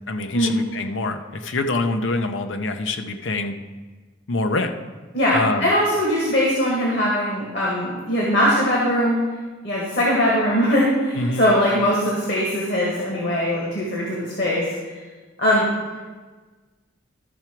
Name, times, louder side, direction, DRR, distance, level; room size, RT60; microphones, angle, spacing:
voice 1, 0.1-3.6 4.3-4.7 5.3-5.7 11.2-11.5, left 2 dB, 80° left, 7 dB, 0.7 m, -25 dB
voice 2, 5.1-9.2 9.6-14.7 15.4-15.7, equal, 60° left, -4 dB, 1.9 m, -21 dB
13.0 x 5.8 x 4.6 m, 1.3 s
head